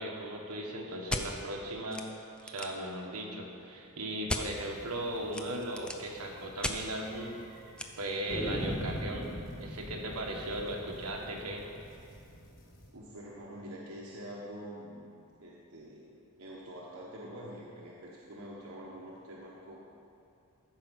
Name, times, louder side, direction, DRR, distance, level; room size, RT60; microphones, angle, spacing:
voice 1, 0.0-7.4 8.0-9.3 9.6-11.7, right 1 dB, 90° right, 0 dB, 1.6 m, -37 dB
sound 1, 1.1-1.3 1.9-2.0 2.3-2.8 4.3-4.4 5.3-6.1 6.6-6.8 7.8-7.9, left 1 dB, 5° left, 0.4 m, -34 dB
sound 2, 4.5-12.9, equal, 40° left, 2.2 m, -57 dB
sound 3, 5.5-5.6 5.9-6.0 6.3-6.4 7.1-7.6 8.3-13.1, equal, 25° left, 1.6 m, -41 dB
voice 2, 12.9-15.1 15.4-16.1 16.4-19.8, equal, 70° right, -5 dB, 1.2 m, -46 dB
14.0 x 5.0 x 6.3 m, 2.5 s
head